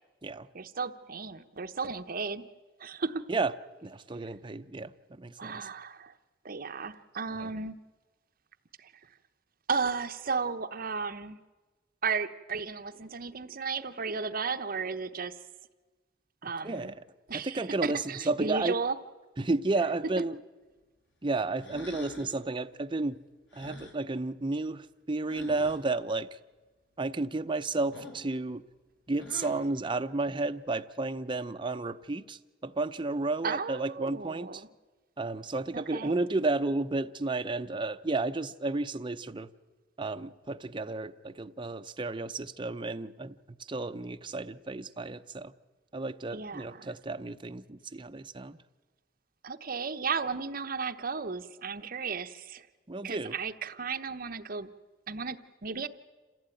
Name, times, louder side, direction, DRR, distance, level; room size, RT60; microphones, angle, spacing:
voice 1, 0.5-2.4 2.8-3.2 5.4-6.1 6.4-7.8 8.8-8.9 9.7-11.4 12.0-15.4 16.4-16.9 17.3-18.9 33.4-34.6 35.7-36.1 46.3-46.9 49.4-52.7 53.0-54.7 55.1-55.9, right 5 dB, 50° right, 8 dB, 1.0 m, -34 dB
voice 2, 3.8-5.7 7.4-7.5 16.6-17.0 17.3-18.7 19.4-20.4 21.2-23.2 23.5-26.3 27.0-28.6 29.1-34.6 35.2-39.5 40.0-45.5 45.9-48.6 52.9-53.3, right 3 dB, 25° right, 9 dB, 0.7 m, -32 dB
sound 1, 21.6-22.4 23.5-24.0 25.3-25.8 27.9-28.3 29.2-29.7, left 1 dB, 70° left, 3.5 m, -44 dB
27.5 x 15.5 x 9.1 m, 1.3 s
head